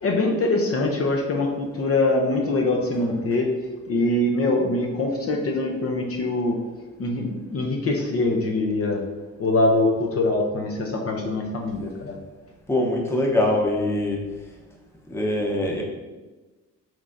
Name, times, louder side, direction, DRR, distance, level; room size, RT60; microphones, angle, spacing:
voice 1, 0.0-3.5 3.9-6.6 7.0-9.0 9.4-12.2, left 2 dB, 50° left, 1 dB, 0.7 m, -23 dB
voice 2, 12.7-14.2 15.1-15.8, left 1 dB, 10° left, -1 dB, 0.8 m, -23 dB
6.0 x 3.2 x 2.6 m, 1.2 s
cardioid pair, 90°, 30 cm